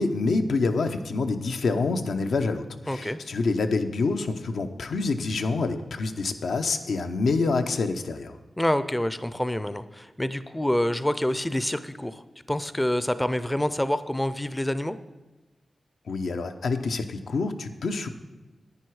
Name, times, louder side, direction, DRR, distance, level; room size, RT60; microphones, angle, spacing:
voice 1, 0.0-8.4 16.1-18.1, left 3 dB, 85° left, 7 dB, 0.7 m, -27 dB
voice 2, 2.9-3.2 8.6-12.2 12.5-15.0, left 1 dB, 10° left, 13 dB, 0.4 m, -27 dB
10.5 x 9.3 x 4.7 m, 1.1 s
wide cardioid pair, 145°, 0 cm